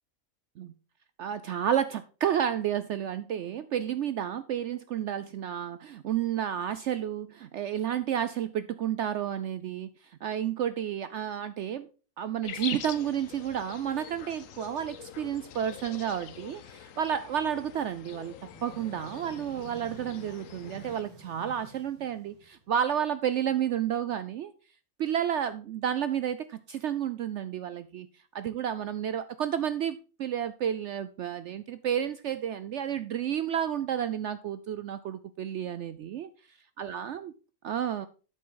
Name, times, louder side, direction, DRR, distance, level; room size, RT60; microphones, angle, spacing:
voice 1, 1.2-9.9 10.2-11.9 12.2-18.4 18.6-24.5 25.0-28.1 28.3-36.3 36.8-37.3 37.6-38.1, right 9 dB, 65° right, 0.7 m, -31 dB
sound 1, 12.4-21.0, left 9 dB, 70° left, 1.1 m, -44 dB
sound 2, 18.3-22.9, right 3 dB, 90° right, 2.3 m, -50 dB
8.8 x 7.3 x 3.8 m
omnidirectional pair, 1.5 m